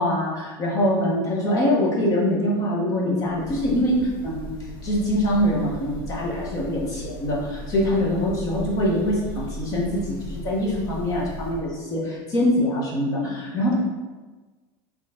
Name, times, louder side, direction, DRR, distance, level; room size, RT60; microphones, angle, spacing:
voice 1, 0.0-13.7, left 1 dB, 25° left, -4 dB, 1.0 m, -24 dB
Breathing / Bird, 3.2-11.8, equal, 55° left, 0.7 m, -37 dB
4.4 x 3.0 x 3.6 m, 1.3 s
supercardioid pair, 165°, 14 cm